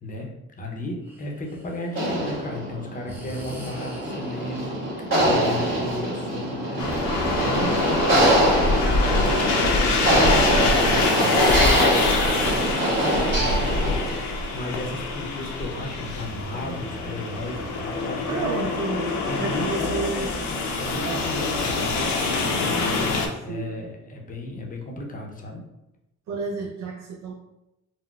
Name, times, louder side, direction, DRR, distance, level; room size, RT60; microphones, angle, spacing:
voice 1, 0.0-0.3 0.6-18.7 19.3-20.0 20.8-25.7, left 1 dB, 30° left, 0 dB, 0.6 m, -34 dB
Breathing, 1.0-2.2 3.1-4.6, right 1 dB, 5° right, 0.7 m, -41 dB
sound 1, 1.9-14.2, equal, 40° right, 1.3 m, -23 dB
sound 2, 6.8-23.3, left 3 dB, 70° left, 0.6 m, -25 dB
voice 2, 18.3-20.3 21.0-21.3 23.5-23.9 26.3-27.3, right 4 dB, 65° right, 0 dB, 0.5 m, -31 dB
3.7 x 2.0 x 2.3 m, 0.92 s
cardioid pair, 90°, 30 cm